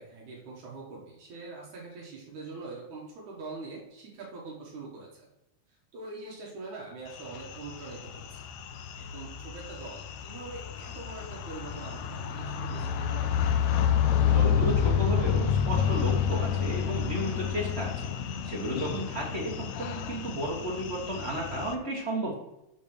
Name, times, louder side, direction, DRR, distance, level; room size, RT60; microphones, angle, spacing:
voice 1, 0.0-5.3 5.9-8.4 8.9-13.5 18.9-19.2, right 3 dB, 70° right, -3 dB, 2.7 m, -43 dB
sound 1, 7.2-21.7, left 8 dB, 80° left, 1.8 m, -29 dB
voice 2, 14.2-18.1 18.4-22.3, right 1 dB, 55° right, -3 dB, 0.7 m, -33 dB
7.1 x 4.4 x 6.1 m, 0.89 s
omnidirectional pair, 3.5 m